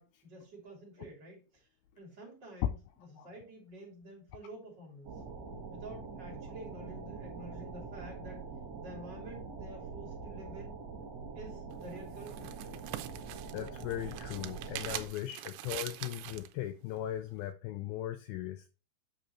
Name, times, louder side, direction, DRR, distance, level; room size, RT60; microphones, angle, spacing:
voice 1, 0.0-1.6 2.0-2.8 3.1-5.1 5.7-8.4 8.8-10.8 11.3-12.5, right 1 dB, 30° right, 3.0 m, -49 dB
sound 1, 5.0-15.1, right 4 dB, 60° right, 1.7 m, -44 dB
sound 2, 11.7-16.5, right 15 dB, 85° right, 2.9 m, -43 dB
voice 2, 13.5-18.7, left 12 dB, 85° left, 2.1 m, -39 dB
8.4 x 6.4 x 3.1 m
omnidirectional pair, 5.0 m